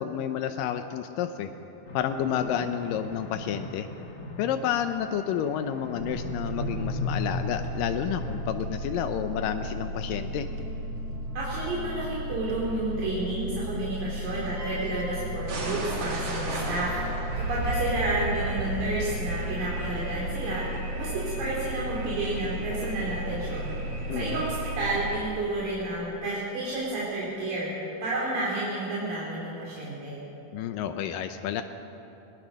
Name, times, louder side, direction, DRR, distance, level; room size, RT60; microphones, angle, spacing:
voice 1, 0.0-1.5 1.9-3.9 4.4-10.5 24.1-24.4 30.5-31.6, left 9 dB, 80° left, 8 dB, 2.4 m, -30 dB
sound 1, 1.9-8.4, left 2 dB, 65° left, 0.6 m, -37 dB
sound 2, 6.0-25.2, right 1 dB, 45° right, 3.4 m, -33 dB
voice 2, 11.3-17.0 17.4-20.6 21.0-23.7 24.1-30.2, right 2 dB, 80° right, -7 dB, 5.0 m, -31 dB
20.5 x 20.0 x 6.4 m, 2.9 s
omnidirectional pair, 3.9 m